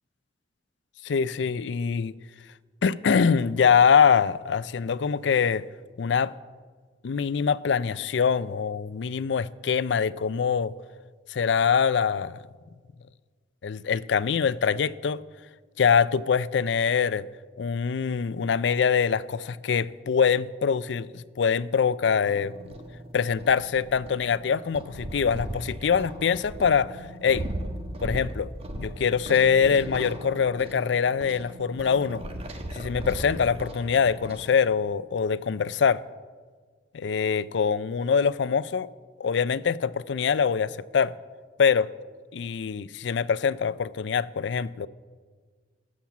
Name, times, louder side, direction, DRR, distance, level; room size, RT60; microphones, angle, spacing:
voice 1, 1.0-2.2 2.8-5.7 6.0-6.3 7.0-10.7 11.3-12.4 13.6-15.2 15.8-17.3 17.6-22.5 23.1-27.5 28.0-28.5 28.7-32.2 32.7-36.0 36.9-38.9 39.2-41.1 41.6-41.9 42.3-44.9, left 6 dB, 70° left, 0.4 m, -24 dB
sound 1, 22.3-34.5, right 1 dB, 35° right, 1.3 m, -37 dB
17.5 x 7.3 x 7.2 m
head